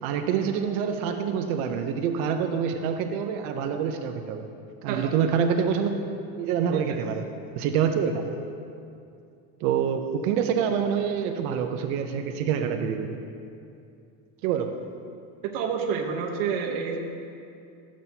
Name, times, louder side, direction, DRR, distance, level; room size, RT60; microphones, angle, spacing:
voice 1, 0.0-4.5 4.8-5.9 6.4-7.2 7.6-8.2 9.6-13.2 14.4-14.8, right 7 dB, 85° right, 5 dB, 0.8 m, -26 dB
voice 2, 15.4-17.0, right 6 dB, 65° right, 0 dB, 1.0 m, -29 dB
14.0 x 7.4 x 2.8 m, 2.5 s
cardioid pair, 155°, 42 cm